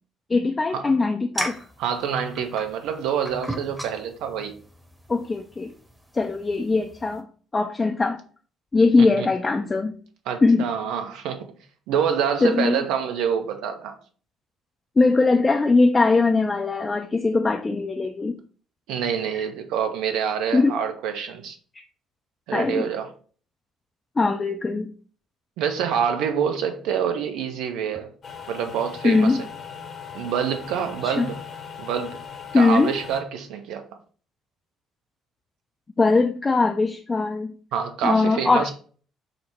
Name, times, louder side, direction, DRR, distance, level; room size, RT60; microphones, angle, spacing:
voice 1, 0.3-1.6 5.1-5.7 6.1-7.2 7.5-8.2 8.7-9.9 10.4-10.6 12.4-12.8 15.0-18.4 20.5-20.8 21.7-21.8 22.5-22.9 24.2-24.9 29.0-29.4 31.0-31.3 32.5-32.9 36.0-37.5 38.0-38.7, left 3 dB, 25° left, 0.3 m, -20 dB
sound 1, 1.3-7.2, right 1 dB, 10° right, 0.8 m, -37 dB
voice 2, 1.8-4.5 9.0-9.3 10.3-11.4 11.9-14.0 18.9-21.6 22.5-23.1 25.6-28.1 28.5-29.4 30.1-31.4 31.8-32.2 32.5-33.8 37.7-38.7, right 8 dB, 60° right, 0.5 m, -26 dB
sound 2, 28.2-33.2, left 7 dB, 40° left, 0.8 m, -39 dB
5.1 x 2.0 x 4.3 m
figure-of-eight pair, 50°, 0 cm